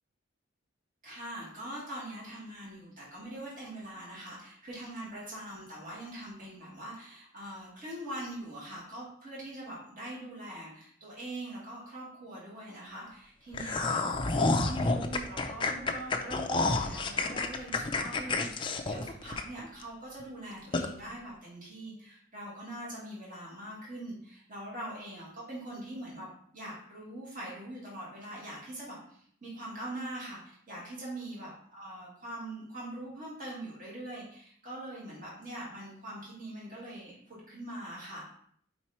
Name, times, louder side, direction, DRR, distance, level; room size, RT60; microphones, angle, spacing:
voice 1, 1.0-26.3 26.5-38.2, right 1 dB, 40° right, -6 dB, 2.2 m, -43 dB
sound 1, 13.5-19.8 20.2-20.3 20.7-20.9, left 3 dB, 25° left, 0.4 m, -29 dB
5.0 x 4.5 x 4.3 m, 0.62 s
head